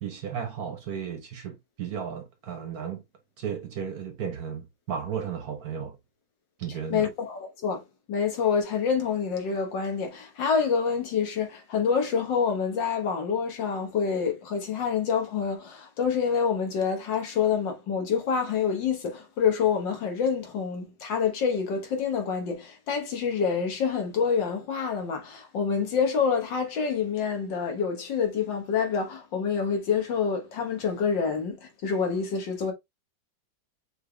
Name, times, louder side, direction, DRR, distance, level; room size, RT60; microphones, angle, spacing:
voice 1, 0.0-3.0 3.4-6.0 6.6-7.1, right 7 dB, 60° right, 1.1 m, -34 dB
voice 2, 6.9-7.8 8.1-32.7, left 6 dB, 70° left, 1.8 m, -27 dB
6.3 x 3.4 x 2.2 m
omnidirectional pair, 2.1 m